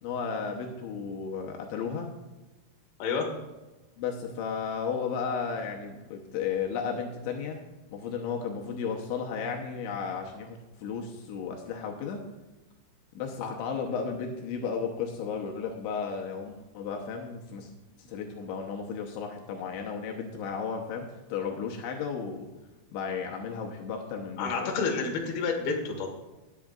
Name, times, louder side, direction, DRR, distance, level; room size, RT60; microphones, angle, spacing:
voice 1, 0.0-2.1 4.0-7.6 7.9-12.2 13.2-17.7 18.1-22.5 22.9-24.7, left 6 dB, 85° left, 1 dB, 3.3 m, -34 dB
voice 2, 24.4-26.1, left 4 dB, 60° left, 1 dB, 3.4 m, -29 dB
19.5 x 8.4 x 2.5 m, 1.1 s
omnidirectional pair, 5.3 m